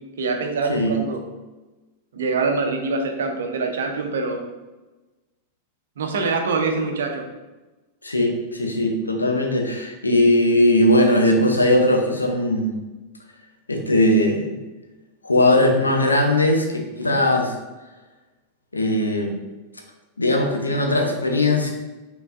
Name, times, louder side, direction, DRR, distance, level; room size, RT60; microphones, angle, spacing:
voice 1, 0.2-1.2 2.1-4.4 6.0-7.3, right 4 dB, 65° right, 4 dB, 0.7 m, -24 dB
voice 2, 8.0-12.7 13.7-14.5 15.2-17.5 18.7-19.3 20.2-21.7, left 1 dB, 80° left, 2 dB, 0.7 m, -19 dB
5.6 x 3.8 x 2.5 m, 1.1 s
figure-of-eight pair, 90°, 0 cm